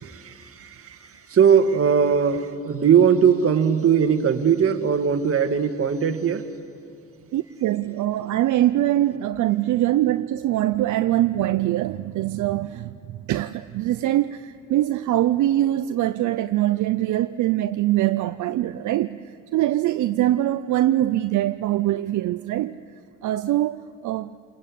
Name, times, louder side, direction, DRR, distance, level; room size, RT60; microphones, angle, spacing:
voice 1, 0.0-6.5, right 7 dB, 50° right, 1.8 m, -20 dB
voice 2, 7.3-22.8 23.2-24.3, right 14 dB, 75° right, 0.6 m, -23 dB
28.5 x 20.5 x 8.4 m
cardioid pair, 90°, 30 cm